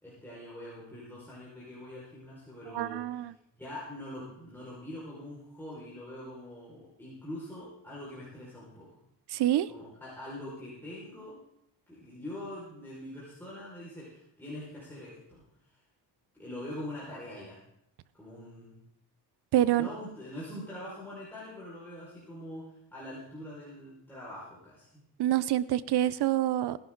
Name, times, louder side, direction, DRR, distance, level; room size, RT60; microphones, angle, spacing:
voice 1, 0.0-3.0 3.5-9.0 9.7-11.4 11.9-15.4 16.3-17.6 18.2-18.8 19.7-24.9, left 1 dB, 5° left, -8 dB, 5.3 m, -43 dB
voice 2, 2.7-3.3 9.3-9.7 19.5-19.9 25.2-26.8, right 13 dB, 70° right, 17 dB, 0.7 m, -26 dB
18.5 x 11.0 x 3.9 m, 0.78 s
cardioid pair, 95°, 41 cm